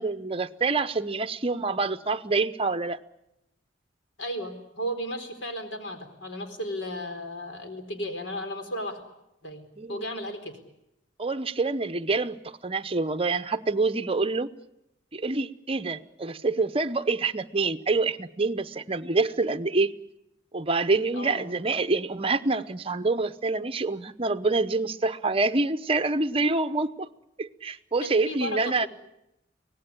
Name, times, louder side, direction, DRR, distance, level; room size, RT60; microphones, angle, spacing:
voice 1, 0.0-3.0 9.8-10.0 11.2-14.5 15.1-19.9 20.5-27.1 27.4-28.9, right 3 dB, 30° right, 11 dB, 0.8 m, -26 dB
voice 2, 4.2-9.0 9.4-9.6 9.9-10.6 21.1-21.5 28.0-28.9, equal, 80° left, 6 dB, 4.1 m, -34 dB
24.5 x 18.0 x 10.0 m, 0.87 s
head